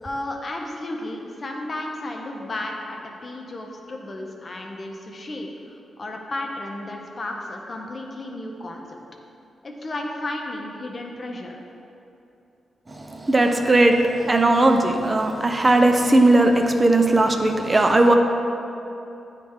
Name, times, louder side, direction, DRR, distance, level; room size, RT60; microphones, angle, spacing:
voice 1, 0.0-9.0 9.6-11.6, left 1 dB, 45° left, 1 dB, 0.7 m, -33 dB
voice 2, 12.9-18.2, right 2 dB, 35° right, 4 dB, 0.5 m, -18 dB
8.4 x 3.2 x 3.6 m, 2.8 s
supercardioid pair, 50°, 0 cm